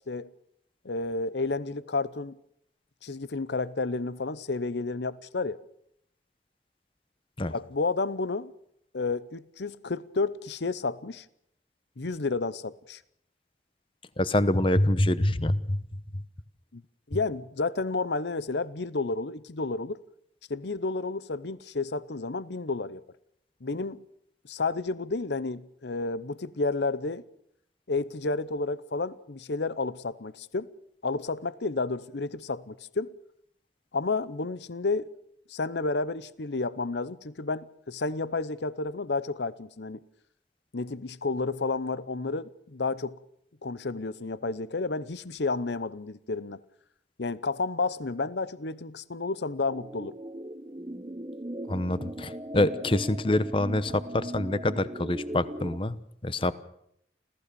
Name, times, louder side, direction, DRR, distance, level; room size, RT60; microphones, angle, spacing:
voice 1, 0.8-2.4 3.0-5.6 7.5-8.5 8.9-11.2 12.0-13.0 16.7-16.8 17.1-20.0 20.5-23.0 23.6-24.0 24.5-27.2 27.9-30.7 31.0-33.1 33.9-35.1 35.5-40.0 40.7-43.2 43.6-46.6 47.2-50.2, left 3 dB, 80° left, 0.8 m, -31 dB
voice 2, 14.2-15.8 16.1-16.2 51.7-56.5, left 1 dB, 30° left, 0.9 m, -26 dB
sound 1, 49.7-55.8, right 1 dB, 25° right, 1.0 m, -39 dB
29.0 x 15.0 x 6.9 m
head